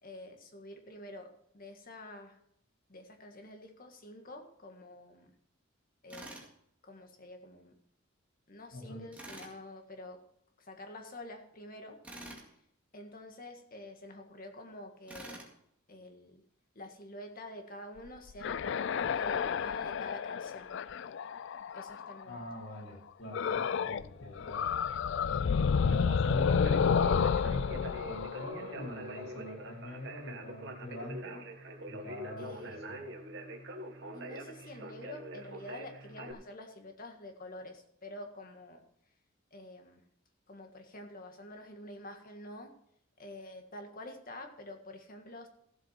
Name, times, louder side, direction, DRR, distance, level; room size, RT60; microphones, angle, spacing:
voice 1, 0.0-2.4 2.9-5.3 6.0-6.4 6.8-7.8 8.5-10.2 10.6-12.0 12.3-12.6 12.9-15.4 15.9-16.4 16.8-20.7 21.7-22.5 32.4-32.8 34.1-38.8 39.5-40.0 40.5-42.7 43.2-45.5, left 1 dB, 45° left, 4 dB, 1.8 m, -48 dB
Tools, 6.1-6.5 9.1-9.5 12.0-12.5 15.1-15.5, right 1 dB, 5° right, 2.2 m, -46 dB
voice 2, 8.7-9.0 22.2-24.7 25.7-31.4 31.8-33.0, left 1 dB, 80° left, -1 dB, 4.9 m, -42 dB
sound 1, 18.1-22.2 23.3-24.1 24.4-29.2, left 6 dB, 60° left, 0.4 m, -30 dB
Conversation, 25.8-36.3, right 1 dB, 60° right, 1.7 m, -45 dB
15.0 x 7.9 x 4.5 m, 0.72 s
head